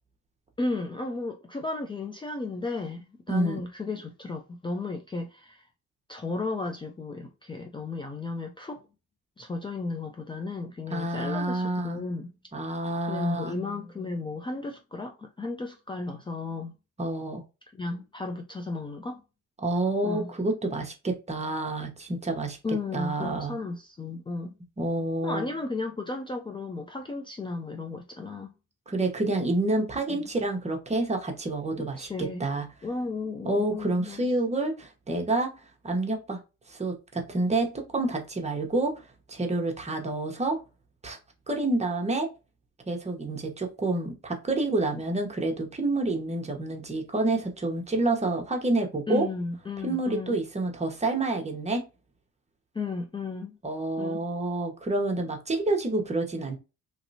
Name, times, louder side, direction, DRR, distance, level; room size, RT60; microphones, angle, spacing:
voice 1, 0.6-5.6 6.1-8.9 9.4-12.3 13.1-16.7 17.7-19.2 20.0-20.3 22.6-24.5 25.2-28.5 30.1-30.3 32.0-32.4 32.8-34.3 49.1-50.4 52.7-53.6 54.0-54.2, left 3 dB, 15° left, 0.4 m, -34 dB
voice 2, 3.3-3.6 10.9-12.0 12.5-13.6 17.0-17.4 19.6-22.6 22.9-23.6 24.8-25.5 28.9-32.6 33.4-35.5 35.8-36.4 36.7-40.6 41.0-41.2 41.5-42.3 42.9-49.3 49.8-51.8 53.6-56.6, right 2 dB, 20° right, 1.0 m, -28 dB
3.1 x 2.7 x 2.7 m
cardioid pair, 90°, 30 cm